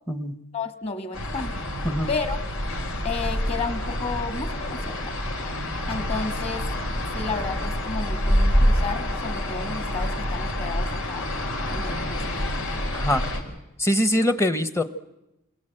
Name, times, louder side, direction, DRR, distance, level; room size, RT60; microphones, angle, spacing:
voice 1, 0.5-1.5 2.1-2.4 3.0-5.1 5.9-6.6 7.1-11.3 11.7-12.5, left 4 dB, 30° left, 8 dB, 1.7 m, -32 dB
sound 1, 1.1-13.4, equal, 80° left, 4.2 m, -27 dB
voice 2, 12.9-13.2 13.8-14.8, left 1 dB, 15° left, 11 dB, 0.9 m, -23 dB
28.0 x 21.5 x 7.8 m, 0.93 s
head